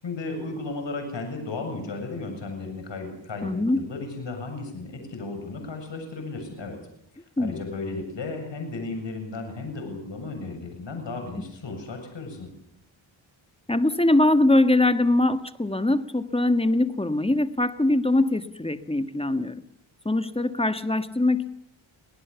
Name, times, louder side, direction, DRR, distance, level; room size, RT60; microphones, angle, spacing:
voice 1, 0.0-6.8 7.1-12.5, left 3 dB, 60° left, 4 dB, 7.6 m, -34 dB
voice 2, 3.4-3.8 7.4-7.6 13.7-19.6 20.0-21.5, left 2 dB, 10° left, 10 dB, 1.4 m, -22 dB
25.5 x 18.5 x 7.0 m, 0.73 s
cardioid pair, 65°, 49 cm